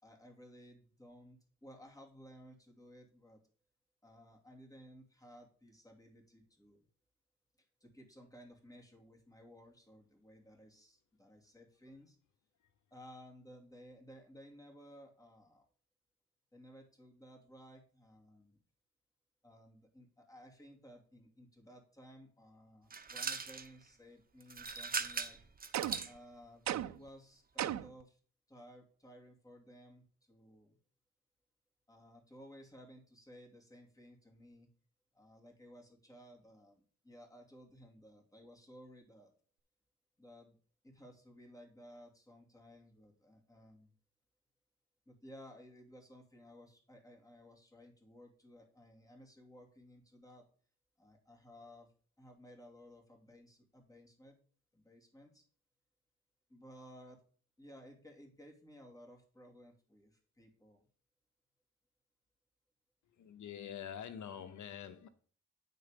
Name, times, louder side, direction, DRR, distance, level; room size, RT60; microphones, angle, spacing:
voice 1, 0.0-3.4 4.0-6.8 7.8-12.2 12.9-15.7 16.5-18.6 19.4-25.4 26.0-28.2 28.5-30.8 31.9-34.7 35.1-39.3 40.2-40.6 40.8-43.9 45.1-50.4 51.0-51.9 52.2-54.4 54.7-55.4 56.5-57.2 57.6-60.9, equal, 10° left, 0 dB, 2.4 m, -57 dB
sound 1, 22.9-23.7 24.4-26.1, right 5 dB, 30° right, 0.8 m, -39 dB
sound 2, 25.7-26.2 26.7-27.1 27.6-28.0, right 12 dB, 70° right, 0.5 m, -37 dB
voice 2, 63.2-65.1, left 9 dB, 75° left, 10 dB, 0.7 m, -45 dB
9.2 x 4.1 x 5.1 m, 0.43 s
cardioid pair, 75°, 30 cm